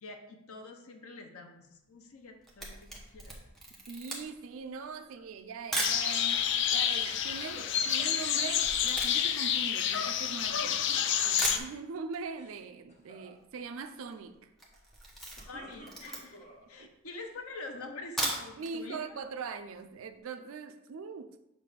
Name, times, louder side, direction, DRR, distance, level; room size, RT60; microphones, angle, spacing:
voice 1, 0.0-3.4 15.5-19.3, left 3 dB, 75° left, 0.7 m, -46 dB
Camera, 2.2-6.1 6.7-6.8 7.0-10.7 11.1-11.2 11.4-12.2 12.5-12.6 12.9-13.0 13.2-13.6 13.9-14.2 14.5-16.5 17.1-17.2 18.0-18.7 19.1-19.2 19.6-19.7, right 1 dB, ahead, 0.8 m, -38 dB
voice 2, 3.7-10.8 11.2-14.4 16.8-16.9 18.6-21.3, right 5 dB, 65° right, 0.4 m, -42 dB
sound 1, 5.8-11.6, left 9 dB, 50° left, 0.3 m, -29 dB
sound 2, 7.4-8.5 10.2-11.5 12.2-12.6 12.9-13.3 15.1-16.7 17.2-18.0, right 1 dB, 30° left, 1.2 m, -51 dB
6.8 x 2.5 x 5.6 m
head